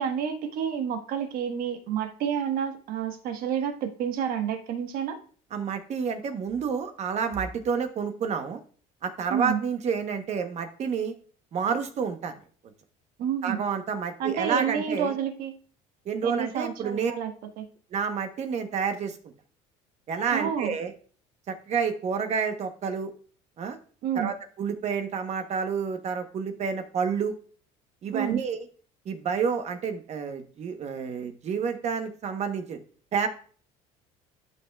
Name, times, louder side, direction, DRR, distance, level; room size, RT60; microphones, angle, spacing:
voice 1, 0.0-5.2 9.3-9.6 13.2-13.6 14.2-15.5 16.2-17.6 20.3-20.8 24.0-24.3 28.1-28.4, right 8 dB, 65° right, 6 dB, 1.3 m, -29 dB
voice 2, 5.5-8.6 9.0-11.1 11.5-12.4 13.4-15.1 16.1-17.1 17.9-19.2 20.1-20.9 21.5-23.1 23.6-23.8 24.1-27.3 28.0-28.7 29.1-32.8 33.1-33.3, right 6 dB, 45° right, 7 dB, 1.0 m, -29 dB
12.0 x 5.6 x 2.3 m, 0.43 s
cardioid pair, 115°, 16 cm